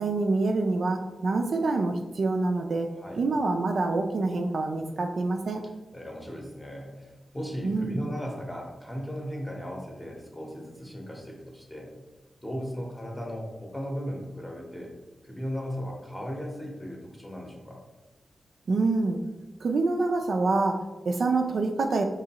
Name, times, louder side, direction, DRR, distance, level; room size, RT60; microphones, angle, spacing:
voice 1, 0.0-2.9 3.2-5.6 7.6-8.1 18.7-19.2 19.6-22.0, right 3 dB, 60° right, 4 dB, 0.3 m, -26 dB
voice 2, 2.9-3.2 5.9-11.9 12.4-14.9 15.2-17.8, equal, 10° left, -1 dB, 0.7 m, -37 dB
4.9 x 3.0 x 2.8 m, 1.1 s
wide cardioid pair, 170°, 0 cm